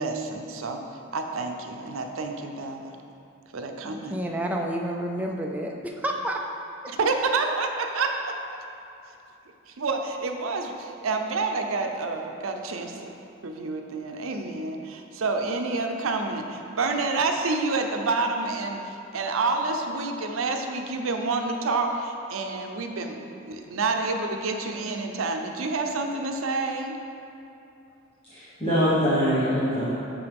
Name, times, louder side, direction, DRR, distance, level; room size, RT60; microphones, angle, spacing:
voice 1, 0.0-3.0 3.5-4.2 6.9-8.6 9.7-13.1 13.4-27.0, right 3 dB, 85° right, 4 dB, 0.6 m, -28 dB
voice 2, 3.8-6.4, right 1 dB, 5° right, 0 dB, 0.4 m, -30 dB
voice 3, 28.3-29.9, equal, 25° left, -13 dB, 1.3 m, -23 dB
6.9 x 5.7 x 3.5 m, 2.8 s
head